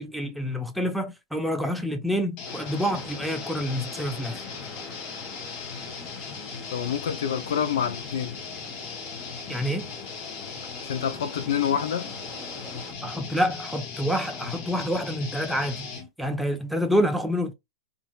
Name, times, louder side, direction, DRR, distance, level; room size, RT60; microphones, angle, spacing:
voice 1, 0.0-4.4 9.5-9.9 13.0-15.9 16.2-17.5, equal, ahead, 0.5 m, -27 dB
sound 1, 2.4-16.1, left 5 dB, 45° left, 1.1 m, -38 dB
sound 2, 2.4-12.9, left 1 dB, 20° left, 1.1 m, -45 dB
voice 2, 6.7-8.3 10.8-12.1, left 8 dB, 70° left, 0.6 m, -27 dB
2.8 x 2.6 x 2.4 m
hypercardioid pair, 115°, 2 cm